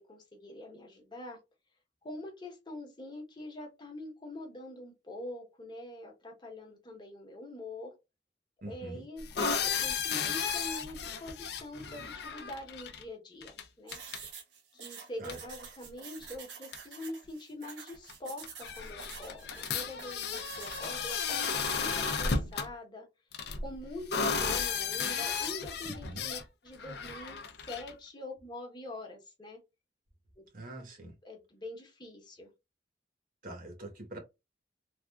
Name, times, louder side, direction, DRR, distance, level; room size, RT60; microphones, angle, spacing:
voice 1, 0.1-1.4 2.0-7.9 8.7-14.0 14.7-23.0 23.6-29.6 30.4-30.5 31.2-32.5, left 1 dB, 25° left, 1.0 m, -44 dB
voice 2, 8.6-9.0 15.2-15.4 25.8-26.3 30.5-31.1 33.4-34.2, right 1 dB, 50° right, 1.1 m, -44 dB
sound 1, 9.2-13.0 13.4-13.6 13.9-14.2 15.3-15.4 16.3-16.4 16.7-16.8 18.1-18.2 18.4-22.7 23.3-26.4 26.8-27.9, left 5 dB, 65° left, 0.5 m, -34 dB
sound 2, 13.9-21.0, right 6 dB, 80° right, 0.8 m, -48 dB
3.4 x 2.4 x 2.3 m
head